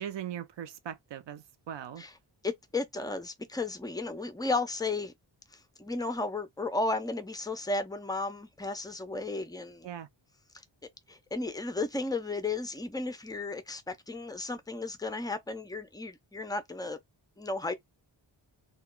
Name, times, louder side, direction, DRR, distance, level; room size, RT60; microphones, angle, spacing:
voice 1, 0.0-2.0 9.8-10.1, right 10 dB, 60° right, 0.6 m, -40 dB
voice 2, 2.4-5.1 5.8-9.9 11.1-17.0 17.4-17.7, left 3 dB, 10° left, 0.4 m, -34 dB
2.2 x 2.2 x 3.6 m
wide cardioid pair, 120°, 49 cm